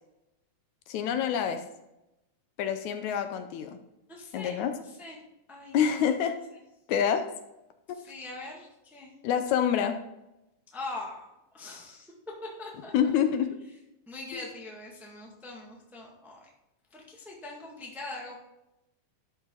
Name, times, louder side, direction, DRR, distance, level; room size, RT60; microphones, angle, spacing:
voice 1, 0.9-1.6 2.6-3.8 4.3-4.7 5.7-6.4 6.9-7.2 7.9-8.0 9.2-10.0 12.9-13.5 14.3-14.4, left 8 dB, 75° left, 8 dB, 2.0 m, -26 dB
voice 2, 4.1-5.2 5.5-6.3 7.9-9.1 10.7-13.1 14.1-16.5 16.9-18.3, left 2 dB, ahead, -2 dB, 1.1 m, -42 dB
12.0 x 5.4 x 3.9 m, 0.93 s
omnidirectional pair, 3.5 m